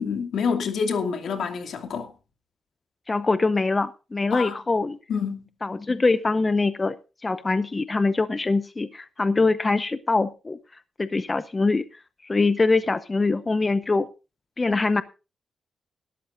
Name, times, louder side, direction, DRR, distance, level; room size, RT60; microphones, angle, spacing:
voice 1, 0.0-2.1 4.3-4.6 5.1-5.5, left 6 dB, 75° left, 2.5 m, -27 dB
voice 2, 3.1-5.0 5.6-7.0 7.2-10.6 11.0-11.9 12.2-14.1 14.6-15.0, left 3 dB, 25° left, 0.7 m, -23 dB
18.0 x 13.0 x 2.6 m
cardioid pair, 90°, 0 cm